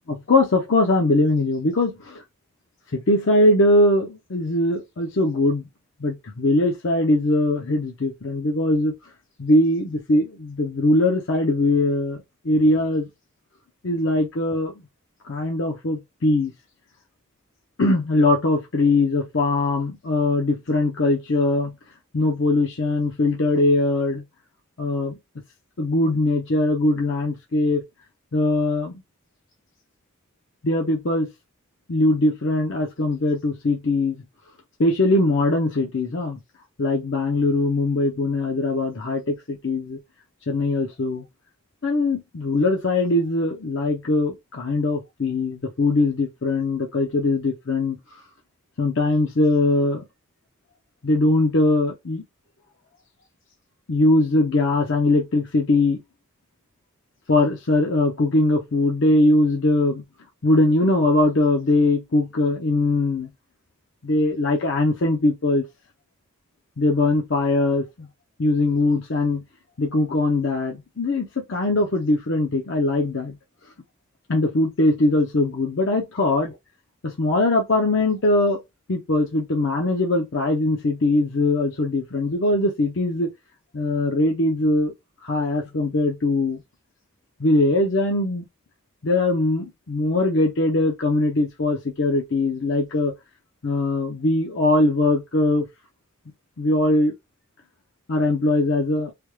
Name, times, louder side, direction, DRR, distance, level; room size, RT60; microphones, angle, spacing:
voice 1, 0.1-2.2 2.9-5.7 6.0-8.9 9.4-13.1 13.8-14.7 15.2-16.5 17.8-21.7 22.1-24.2 24.8-25.2 25.8-27.8 28.3-29.0 30.6-31.3 31.9-34.2 34.8-36.4 36.8-40.0 40.5-41.2 41.8-48.0 48.8-50.0 51.0-52.2 53.9-56.0 57.3-60.0 60.4-63.3 64.0-65.7 66.8-67.9 68.4-69.4 69.8-73.3 74.3-76.5 77.0-78.6 78.9-83.3 83.7-84.9 85.2-86.6 87.4-88.5 89.0-93.1 93.6-95.7 96.6-97.1 98.1-99.1, left 2 dB, 60° left, 0.6 m, -21 dB
3.3 x 2.2 x 3.1 m
head